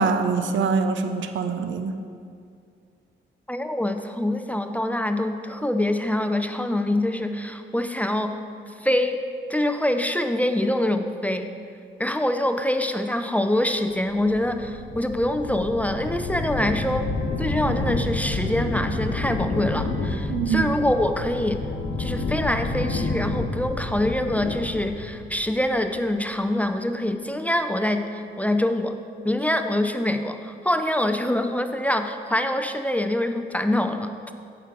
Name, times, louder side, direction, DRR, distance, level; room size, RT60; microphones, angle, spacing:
voice 1, 0.0-1.9 20.3-20.7, right 5 dB, 70° right, 8 dB, 0.6 m, -24 dB
voice 2, 3.5-8.3 8.8-9.2 9.5-11.5 12.0-17.1 17.4-21.6 22.0-29.0 29.2-34.1, left 1 dB, 5° left, 7 dB, 0.5 m, -25 dB
sound 1, 14.0-26.1, left 2 dB, 85° left, 0.9 m, -29 dB
8.0 x 6.0 x 4.7 m, 2.3 s
cardioid pair, 65°, 21 cm